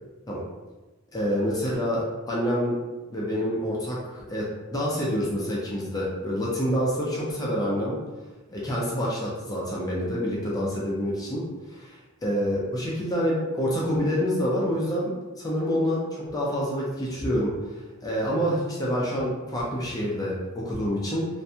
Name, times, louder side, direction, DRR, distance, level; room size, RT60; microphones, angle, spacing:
voice 1, 1.1-2.8 3.1-8.0 8.5-12.0 12.2-17.5 18.0-21.3, equal, 15° left, -5 dB, 0.4 m, -27 dB
2.5 x 2.2 x 2.7 m, 1.2 s
head